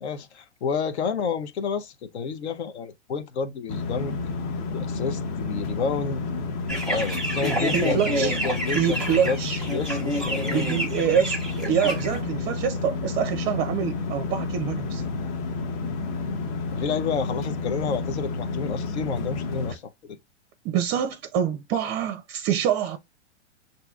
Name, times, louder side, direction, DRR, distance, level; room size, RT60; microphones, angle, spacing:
voice 1, 0.0-4.1 4.7-6.2 6.8-9.0 9.2-9.4 9.7-10.6 16.7-19.8, left 5 dB, 70° left, 0.8 m, -30 dB
sound 1, 3.7-19.7, left 3 dB, 35° left, 0.7 m, -30 dB
sound 2, 6.7-12.2, right 1 dB, ahead, 1.0 m, -29 dB
voice 2, 7.7-8.4 8.7-9.6 10.5-15.0 20.6-23.0, right 8 dB, 30° right, 0.5 m, -26 dB
6.6 x 2.6 x 2.3 m
hypercardioid pair, 105°, 35 cm